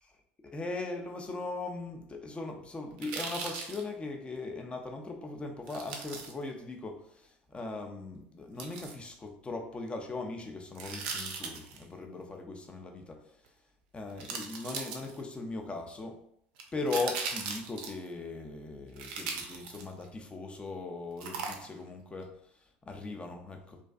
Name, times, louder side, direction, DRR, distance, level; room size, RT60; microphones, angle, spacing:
voice 1, 0.4-13.2 13.9-16.2 16.7-22.3 22.9-23.8, left 3 dB, 20° left, 4 dB, 0.5 m, -39 dB
sound 1, 3.0-3.8 5.7-6.3 8.6-8.9 10.7-11.8 13.5-13.6 14.2-15.4 16.6-18.1 19.0-20.1 21.2-21.9 22.2-22.3, right 5 dB, 70° right, 0.4 m, -38 dB
2.5 x 2.3 x 2.3 m, 0.69 s
hypercardioid pair, 70°, 5 cm